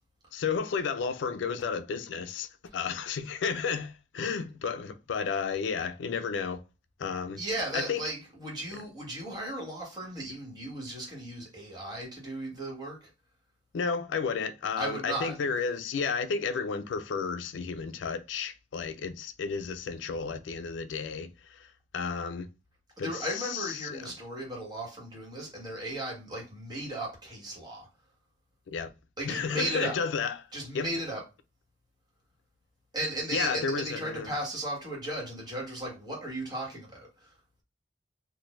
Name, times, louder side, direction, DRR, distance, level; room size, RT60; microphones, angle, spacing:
voice 1, 0.3-6.6 7.0-7.4 7.7-8.0 13.7-21.7 21.9-22.5 23.0-24.1 28.7-28.9 29.2-30.4 30.7-30.9 33.3-34.3, left 5 dB, 75° left, 0.4 m, -32 dB
voice 2, 7.4-13.1 14.8-15.3 23.0-27.9 29.2-30.0 30.5-31.2 32.9-37.3, right 1 dB, 25° right, 1.5 m, -36 dB
3.8 x 2.5 x 2.5 m
head